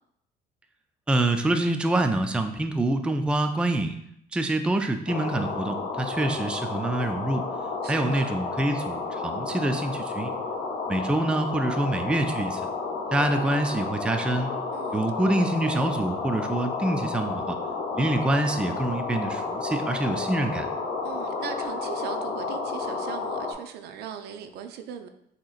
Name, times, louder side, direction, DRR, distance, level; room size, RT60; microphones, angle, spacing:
voice 1, 1.1-3.9 4.3-7.4 7.9-10.3 10.9-12.7 13.1-14.6 14.9-17.6 17.9-20.7, right 1 dB, 5° right, 6 dB, 0.3 m, -26 dB
sound 1, 5.1-23.5, left 4 dB, 70° left, 0.8 m, -31 dB
voice 2, 7.8-8.4 14.7-15.5 21.0-25.1, right 8 dB, 75° right, 8 dB, 0.5 m, -39 dB
6.0 x 2.9 x 2.4 m, 0.73 s
cardioid pair, 110°, 17 cm